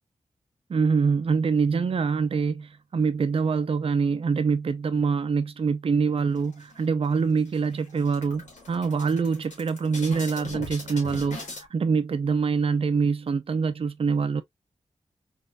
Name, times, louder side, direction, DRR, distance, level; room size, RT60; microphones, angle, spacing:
voice 1, 0.7-14.4, right 5 dB, 50° right, 0.4 m, -25 dB
sound 1, 6.3-7.1 7.5-7.6 7.9-11.7, left 3 dB, 80° left, 1.4 m, -40 dB
4.1 x 2.4 x 2.2 m
wide cardioid pair, 80°, 12 cm